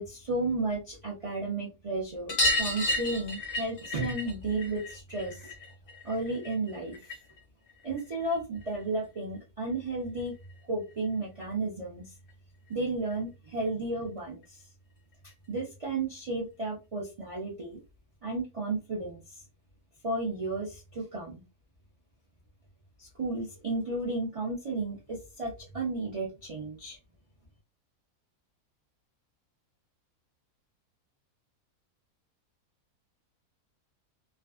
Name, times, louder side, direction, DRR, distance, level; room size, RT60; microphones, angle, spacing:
voice 1, 0.0-5.4 6.0-7.0 7.8-10.3 10.7-12.1 12.7-14.4 15.5-17.8 18.2-19.2 20.0-21.4 23.0-27.0, right 2 dB, 45° right, -4 dB, 0.4 m, -33 dB
sound 1, 2.3-7.4 7.7-8.8 10.2-10.3 10.5-10.6 10.9-11.0 12.3-12.4 12.7-12.8 13.1-13.2 14.4-14.5 15.3-15.4, left 1 dB, 55° left, 0.6 m, -33 dB
2.6 x 2.2 x 2.3 m, 0.27 s
omnidirectional pair, 1.7 m